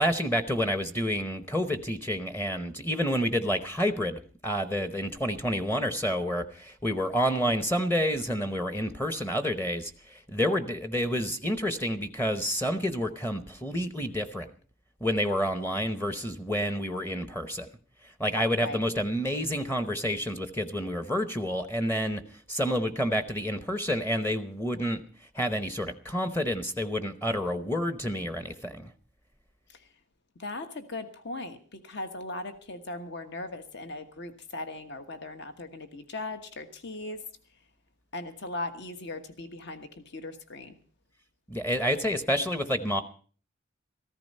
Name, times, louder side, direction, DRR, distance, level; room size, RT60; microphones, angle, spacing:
voice 1, 0.0-14.5 15.0-17.7 18.2-22.2 22.5-25.0 25.3-28.9 41.5-43.0, equal, 10° left, 10 dB, 0.8 m, -29 dB
voice 2, 30.4-37.2 38.1-40.8, left 2 dB, 60° left, 8 dB, 1.4 m, -38 dB
14.5 x 14.5 x 5.4 m, 0.42 s
head